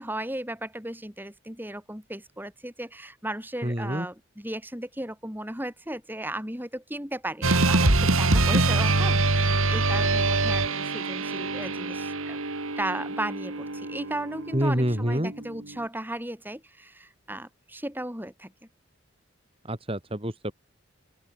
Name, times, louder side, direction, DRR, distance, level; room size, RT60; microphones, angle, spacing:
voice 1, 0.0-12.4 12.8-18.5, right 1 dB, 10° right, 5.6 m, -35 dB
voice 2, 3.6-4.1 14.5-15.3 19.7-20.5, equal, 25° right, 4.0 m, -27 dB
sound 1, 7.4-15.8, right 2 dB, 85° right, 3.0 m, -25 dB
open air
head